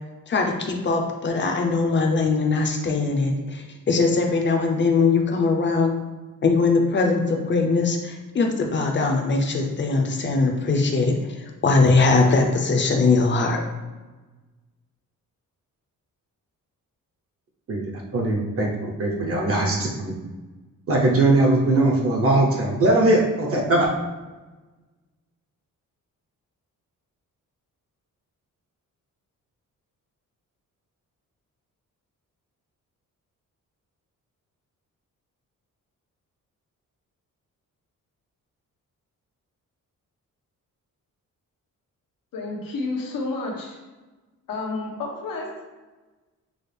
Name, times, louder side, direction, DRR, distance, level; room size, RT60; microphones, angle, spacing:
voice 1, 0.3-5.9 6.4-13.6, left 3 dB, 35° left, 2 dB, 0.6 m, -21 dB
voice 2, 18.1-20.1 20.9-23.9, right 2 dB, 45° right, -1 dB, 0.7 m, -20 dB
voice 3, 42.3-43.8 44.5-45.5, left 3 dB, 90° left, -1 dB, 1.0 m, -30 dB
6.2 x 2.4 x 3.3 m, 1.2 s
wide cardioid pair, 160°, 33 cm